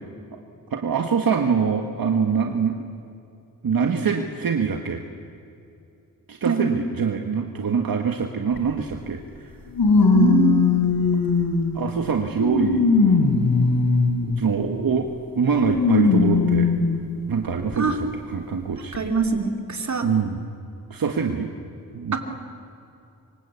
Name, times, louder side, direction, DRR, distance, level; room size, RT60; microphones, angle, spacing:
voice 1, 0.7-2.8 3.6-5.0 6.3-9.2 11.7-12.9 14.4-15.1 15.3-16.7 17.3-18.9 20.0-20.4 20.9-21.5 21.9-22.2, right 6 dB, 70° right, 3 dB, 1.6 m, -24 dB
sound 1, 8.5-8.6 9.7-11.8 12.4-14.4 15.6-17.0 17.7-17.8 18.9-19.0, left 4 dB, 85° left, 4.0 m, -19 dB
voice 2, 10.1-10.6 17.8-18.0 18.9-20.1 22.1-22.2, right 4 dB, 50° right, 4 dB, 2.8 m, -22 dB
26.0 x 24.5 x 8.3 m, 2.6 s
wide cardioid pair, 100°, 36 cm